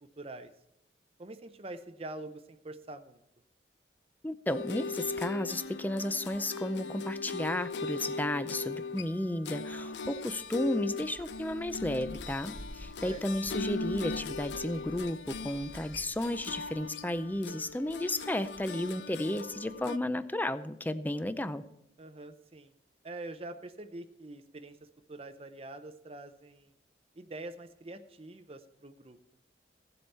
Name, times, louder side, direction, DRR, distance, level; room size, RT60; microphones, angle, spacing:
voice 1, 0.2-0.5 1.2-3.2 13.1-13.2 22.0-22.7 23.0-24.8 25.1-26.7 27.2-29.2, right 2 dB, 35° right, 9 dB, 0.6 m, -45 dB
voice 2, 4.2-21.6, left 1 dB, 10° left, 13 dB, 0.5 m, -33 dB
sound 1, 4.5-20.0, left 4 dB, 70° left, 0.5 m, -39 dB
sound 2, 9.7-16.8, right 1 dB, 15° right, 1.0 m, -51 dB
16.0 x 7.8 x 4.2 m, 0.81 s
head